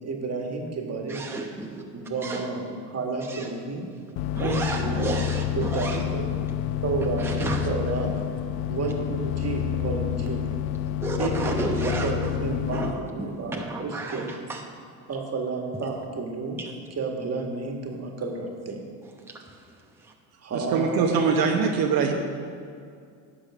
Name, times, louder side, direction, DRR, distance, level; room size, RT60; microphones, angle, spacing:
voice 1, 0.0-1.4 1.9-3.9 4.4-5.2 5.5-6.4 6.8-8.2 8.7-10.5 11.2-14.3 15.1-16.6 16.9-18.8 20.4-21.5, right 3 dB, 35° right, 2 dB, 1.8 m, -31 dB
voice 2, 1.1-1.8 2.2-2.5 3.3-3.5 4.3-6.0 7.2-7.7 11.0-12.3 12.7-12.9 13.2-14.6 16.6-16.7 20.0-20.1, right 2 dB, 5° right, 1 dB, 1.0 m, -32 dB
sound 1, 4.2-12.9, left 11 dB, 65° left, 0.5 m, -29 dB
voice 3, 20.7-22.1, right 5 dB, 55° right, 2 dB, 1.1 m, -22 dB
11.0 x 6.5 x 4.9 m, 2.3 s
hypercardioid pair, 75°, 42 cm